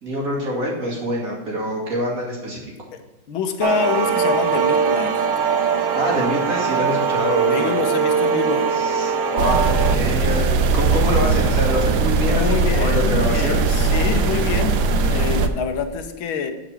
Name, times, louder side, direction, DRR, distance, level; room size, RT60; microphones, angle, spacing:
voice 1, 0.0-2.6 5.9-7.7 8.7-13.8, equal, 45° right, -3 dB, 2.7 m, -25 dB
voice 2, 3.3-5.3 7.5-8.7 12.2-16.5, left 6 dB, 80° left, 7 dB, 1.7 m, -26 dB
sound 1, 3.6-10.0, right 6 dB, 85° right, 0.7 m, -21 dB
sound 2, 9.4-15.5, right 3 dB, 65° right, 1.1 m, -19 dB
7.8 x 5.0 x 7.2 m, 1.1 s
omnidirectional pair, 2.2 m